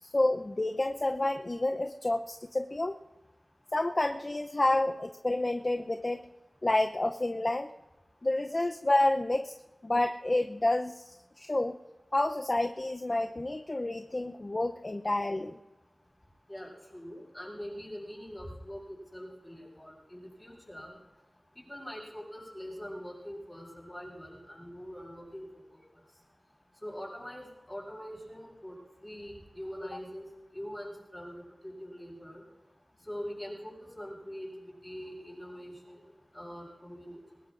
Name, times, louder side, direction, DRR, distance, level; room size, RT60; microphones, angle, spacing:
voice 1, 0.0-3.0 3.7-6.2 6.6-7.7 8.2-9.5 9.8-11.8 12.1-15.6, left 2 dB, 35° left, 5 dB, 0.6 m, -29 dB
voice 2, 16.5-21.0 21.7-25.5 25.7-25.8 26.8-30.3 30.5-32.4 33.1-36.0 36.3-37.2, equal, 15° left, -4 dB, 7.1 m, -43 dB
22.0 x 20.0 x 2.5 m, 1.1 s
wide cardioid pair, 70°, 0 cm